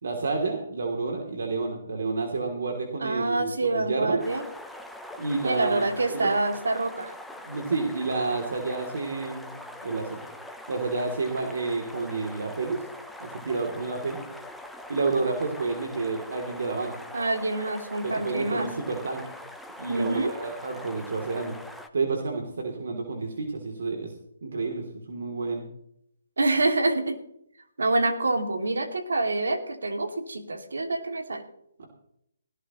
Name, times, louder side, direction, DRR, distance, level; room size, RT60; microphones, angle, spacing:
voice 1, 0.0-4.2 5.2-6.3 7.4-9.5 9.8-10.2 10.7-12.8 13.2-14.2 14.9-17.0 18.0-19.2 19.8-21.6 21.9-24.1 24.4-25.6 31.8-31.9, right 3 dB, 70° right, 2 dB, 3.1 m, -30 dB
voice 2, 3.0-4.4 5.4-7.1 17.1-18.7 19.9-20.3 26.4-27.2 27.8-31.4, right 2 dB, 90° right, 6 dB, 2.6 m, -26 dB
sound 1, 4.2-21.9, left 1 dB, ahead, 0.9 m, -43 dB
18.0 x 17.0 x 3.2 m, 0.73 s
hypercardioid pair, 155°, 0 cm